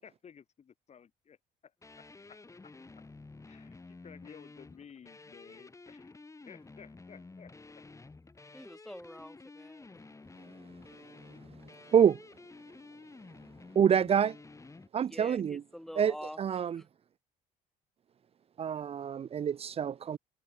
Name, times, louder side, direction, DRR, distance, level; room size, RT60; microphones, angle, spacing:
voice 1, 0.0-1.4 1.6-1.7 2.0-2.8 3.5-6.1 6.5-7.8, left 7 dB, 40° left, 3.8 m, -55 dB
sound 1, 1.8-14.9, left 3 dB, 20° left, 7.5 m, -51 dB
voice 2, 8.5-10.0 15.0-16.4 16.7-16.9, equal, ahead, 2.5 m, -46 dB
voice 3, 13.8-14.3 14.9-15.6 16.0-16.8 18.6-20.2, right 8 dB, 35° right, 0.5 m, -27 dB
cardioid pair, 110°, 17 cm